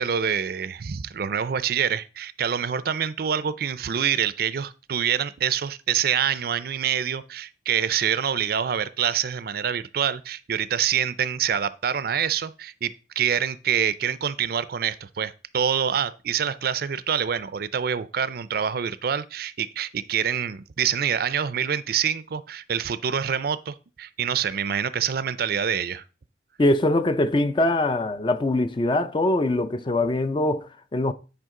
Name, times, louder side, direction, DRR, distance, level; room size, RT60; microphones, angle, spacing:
voice 1, 0.0-26.0, right 8 dB, 55° right, 0.4 m, -26 dB
voice 2, 26.6-31.1, left 1 dB, 25° left, 0.4 m, -23 dB
9.4 x 4.9 x 3.7 m
head